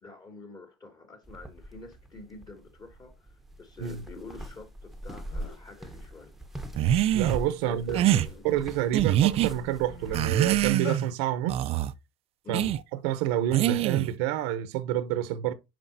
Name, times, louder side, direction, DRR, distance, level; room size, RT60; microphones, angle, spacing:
voice 1, 0.0-6.3 7.6-8.6 12.4-12.7, left 3 dB, 30° left, 2.5 m, -46 dB
sound 1, 1.2-10.8, right 1 dB, ahead, 1.1 m, -42 dB
sound 2, 5.0-5.1 5.3-5.7 6.2-7.7 8.3-8.5 8.8-11.0, left 5 dB, 80° left, 3.6 m, -45 dB
sound 3, 6.8-7.4 7.9-8.3 8.9-9.5 10.1-11.1 11.5-11.9 12.5-12.8 13.5-14.1, right 12 dB, 45° right, 0.6 m, -24 dB
voice 2, 7.1-8.0 8.4-11.7 12.5-12.6 13.0-15.5, right 12 dB, 75° right, 0.9 m, -28 dB
9.1 x 5.2 x 2.7 m
supercardioid pair, 105°, 14 cm